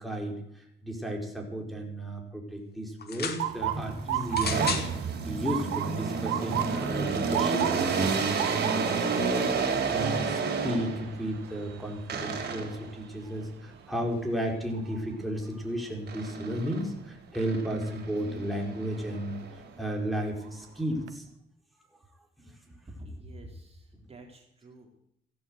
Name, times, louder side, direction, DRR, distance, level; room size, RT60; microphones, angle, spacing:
voice 1, 0.0-9.3 9.9-19.4 19.8-21.3 22.7-22.8, equal, ahead, -1 dB, 4.5 m, -34 dB
sound 1, 3.0-3.4 4.3-4.9 5.8-5.9, left 6 dB, 55° left, 2.4 m, -33 dB
Motor vehicle (road) / Siren, 3.4-15.3 15.7-16.2 17.0-17.3 19.1-19.4 19.9-20.0 20.4-21.1, right 12 dB, 85° right, 1.3 m, -36 dB
sound 2, 3.6-11.2 12.1-12.9 16.1-16.9 17.3-19.7, right 4 dB, 55° right, 4.0 m, -30 dB
voice 2, 23.0-25.0, equal, 30° right, 1 dB, 3.7 m, -47 dB
15.5 x 11.0 x 8.0 m, 0.76 s
cardioid pair, 90°, 20 cm